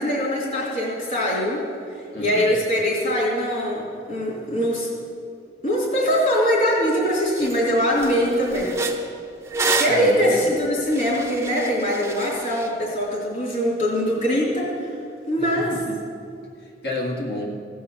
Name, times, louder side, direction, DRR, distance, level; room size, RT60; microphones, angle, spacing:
voice 1, 0.0-1.6 2.2-4.9 5.6-8.7 9.8-14.9 15.3-15.7, equal, 45° left, -5 dB, 3.4 m, -22 dB
voice 2, 2.1-2.5 9.9-10.5 15.4-16.0 16.8-17.6, left 1 dB, 65° left, -1 dB, 1.9 m, -30 dB
sound 1, 6.9-7.0 7.4-7.6 7.9-12.7, right 3 dB, 15° right, 0.7 m, -29 dB
16.0 x 5.4 x 7.1 m, 2.4 s
head